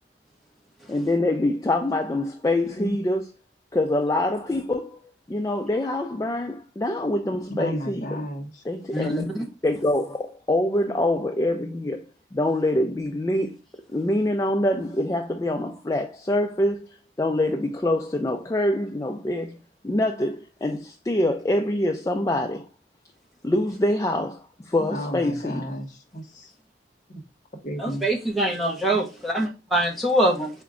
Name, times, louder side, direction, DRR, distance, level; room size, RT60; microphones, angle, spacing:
voice 1, 0.9-3.2 3.7-5.0 5.3-8.2 8.6-12.0 12.3-13.6 13.9-16.9 17.2-19.6 19.8-22.7 23.4-25.7, left 1 dB, 20° left, 0.3 m, -25 dB
voice 2, 7.5-8.6 24.8-26.5 27.1-27.2 27.6-28.1, equal, 40° left, 0.9 m, -33 dB
voice 3, 8.9-9.5 27.8-30.5, right 1 dB, ahead, 0.7 m, -24 dB
4.9 x 2.2 x 3.5 m
head